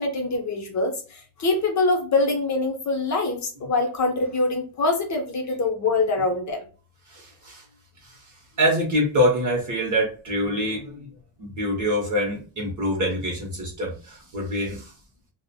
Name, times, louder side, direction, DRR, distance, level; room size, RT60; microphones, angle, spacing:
voice 1, 0.0-6.6, left 3 dB, 40° left, 3 dB, 0.6 m, -24 dB
voice 2, 7.1-7.6 8.0-8.2 8.6-11.1 11.4-14.9, equal, 40° right, -1 dB, 0.7 m, -25 dB
2.4 x 2.0 x 2.7 m, 0.37 s
wide cardioid pair, 160°, 47 cm